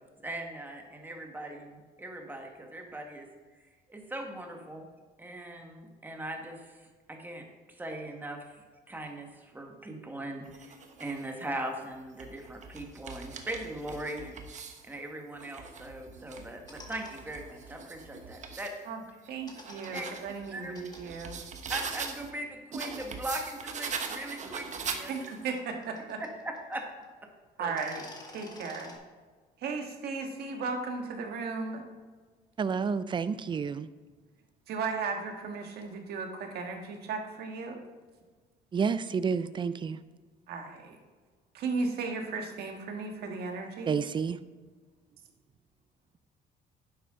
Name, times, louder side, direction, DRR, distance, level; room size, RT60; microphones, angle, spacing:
voice 1, 0.2-3.3 3.9-4.9 5.2-6.8 7.1-8.6 8.9-10.7 11.0-18.7 19.9-20.1 20.5-20.7 21.7-25.1 26.2-26.8 27.6-27.8, right 1 dB, 10° right, 2 dB, 1.6 m, -40 dB
sound 1, 10.4-11.2 11.9-14.9 15.3-18.8 19.2-22.3 22.7-25.5, right 5 dB, 45° right, 1.1 m, -41 dB
sound 2, 14.8-15.0 16.5-17.1 19.5-19.9 20.8-21.0 22.0-22.1 23.0-23.1 23.8-23.9 24.2-24.3 25.2-26.8 27.0-27.1 27.6-29.0, left 3 dB, 25° left, 1.9 m, -49 dB
voice 2, 19.3-21.4 25.1-26.2 27.6-28.9 29.6-31.8 34.7-37.8 40.5-41.0 41.5-44.0, right 4 dB, 70° right, 3 dB, 1.6 m, -35 dB
voice 3, 32.6-33.9 38.7-40.0 43.9-44.4, right 6 dB, 30° right, 15 dB, 0.5 m, -29 dB
10.5 x 7.8 x 3.7 m, 1.4 s
cardioid pair, 110°, 17 cm